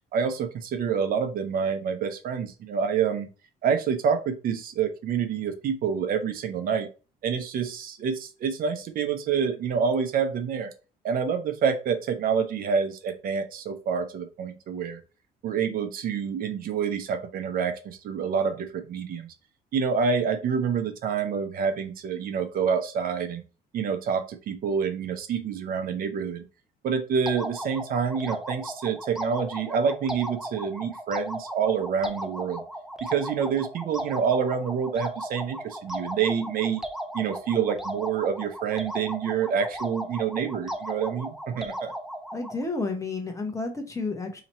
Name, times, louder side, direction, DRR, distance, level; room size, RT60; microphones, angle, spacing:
voice 1, 0.1-3.3 3.6-6.9 7.2-10.7 11.0-15.0 15.4-19.3 19.7-23.4 23.7-26.4 26.8-32.6 33.0-36.8 37.1-41.9, right 6 dB, 60° right, 6 dB, 0.7 m, -27 dB
sound 1, 27.3-42.6, right 1 dB, ahead, 0.5 m, -36 dB
voice 2, 42.3-44.4, left 3 dB, 20° left, 5 dB, 0.8 m, -31 dB
2.9 x 2.9 x 4.1 m, 0.33 s
cardioid pair, 110°, 17 cm